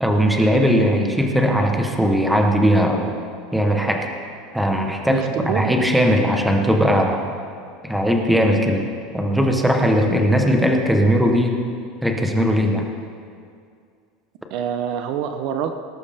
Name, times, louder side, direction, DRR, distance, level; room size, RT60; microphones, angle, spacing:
voice 1, 0.0-3.1 3.5-4.1 4.5-5.3 5.5-7.2 7.8-8.9 9.1-11.6 12.0-12.9, equal, ahead, 2 dB, 0.8 m, -18 dB
voice 2, 5.1-5.8 14.5-15.7, right 8 dB, 45° right, 8 dB, 0.7 m, -25 dB
19.0 x 12.0 x 3.4 m, 2.2 s
supercardioid pair, 175°, 0 cm